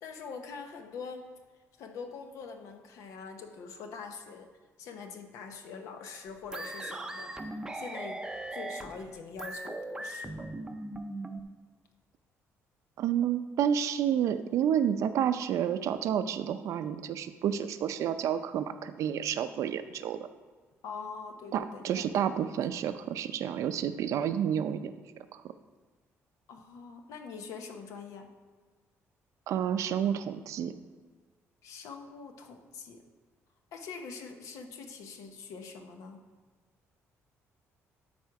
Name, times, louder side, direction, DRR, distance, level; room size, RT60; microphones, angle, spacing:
voice 1, 0.0-1.3 1.8-4.5 4.8-8.2 8.5-10.3 20.8-22.1 26.5-28.3 31.6-33.0 33.7-36.2, left 5 dB, 85° left, 5 dB, 1.0 m, -44 dB
sound 1, 6.5-11.4, right 2 dB, 10° right, 0.6 m, -39 dB
voice 2, 13.0-20.2 21.5-24.9 25.3-25.4 29.5-30.7, right 9 dB, 70° right, 10 dB, 0.5 m, -30 dB
12.5 x 4.4 x 4.8 m, 1.4 s
cardioid pair, 140°, 5 cm